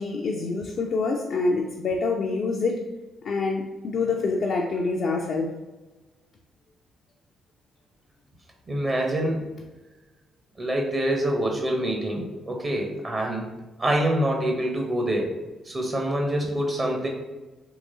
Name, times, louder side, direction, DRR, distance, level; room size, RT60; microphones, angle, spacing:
voice 1, 0.0-2.8 3.2-5.5, left 3 dB, 60° left, 0 dB, 0.4 m, -26 dB
voice 2, 8.7-9.4 10.6-13.5 13.8-15.4 15.7-17.1, right 1 dB, 40° right, 1 dB, 0.8 m, -26 dB
3.8 x 2.9 x 2.7 m, 1.1 s
hypercardioid pair, 40°, 0 cm